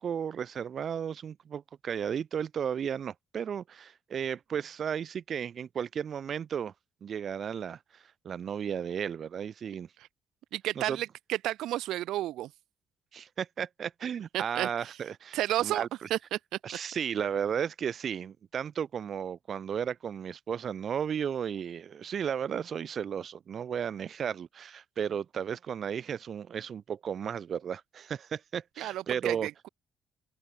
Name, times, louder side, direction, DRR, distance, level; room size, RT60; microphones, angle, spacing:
voice 1, 0.0-6.7 7.0-9.9 10.7-11.0 13.1-15.9 16.6-29.5, right 8 dB, 55° right, 3.1 m, -34 dB
voice 2, 10.5-12.5 14.3-14.7 15.3-16.4 28.8-29.7, right 14 dB, 85° right, 2.4 m, -32 dB
cardioid pair, 90°, 0 cm